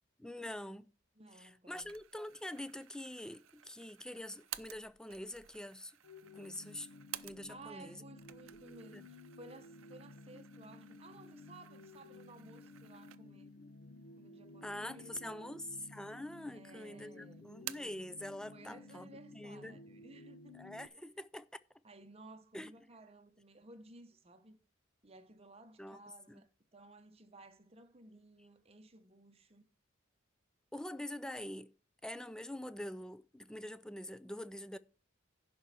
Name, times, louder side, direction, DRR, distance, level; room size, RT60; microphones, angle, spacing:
voice 1, 0.2-0.9 1.3-6.0 6.3-6.9 7.2-8.0 8.9-9.0 14.6-19.8 20.5-21.5 22.5-22.7 25.8-26.0 26.3-26.4 30.7-31.7 32.0-34.8, left 1 dB, 5° left, 0.3 m, -45 dB
voice 2, 1.2-1.9 7.5-13.6 14.2-15.5 16.5-17.5 18.5-21.0 21.8-24.6 25.0-29.6, right 2 dB, 30° right, 0.9 m, -57 dB
sound 1, 1.8-7.8 8.1-13.6 14.0-14.1 14.9-15.6 15.9-16.7 16.9-18.1, right 14 dB, 80° right, 0.5 m, -52 dB
sound 2, 6.0-20.9, left 2 dB, 65° left, 0.6 m, -55 dB
11.0 x 4.4 x 6.8 m
head